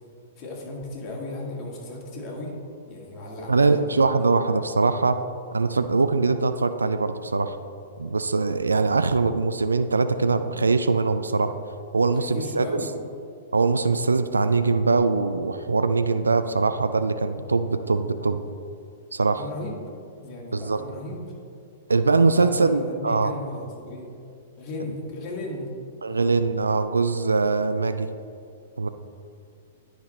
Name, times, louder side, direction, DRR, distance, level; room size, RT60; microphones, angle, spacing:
voice 1, 0.4-2.6 2.9-4.1 12.1-12.9 19.4-19.8 20.2-21.2 22.1-24.1 24.6-25.7 26.1-26.3, left 2 dB, 30° left, -3 dB, 1.7 m, -35 dB
voice 2, 3.5-5.2 5.5-7.6 8.0-11.5 11.9-12.8 13.5-18.4 19.1-19.4 20.5-20.8 21.9-23.3 26.0-28.1 28.8-28.9, right 4 dB, 80° right, 10 dB, 0.3 m, -22 dB
9.2 x 5.1 x 4.0 m, 2.5 s
figure-of-eight pair, 105°, 0 cm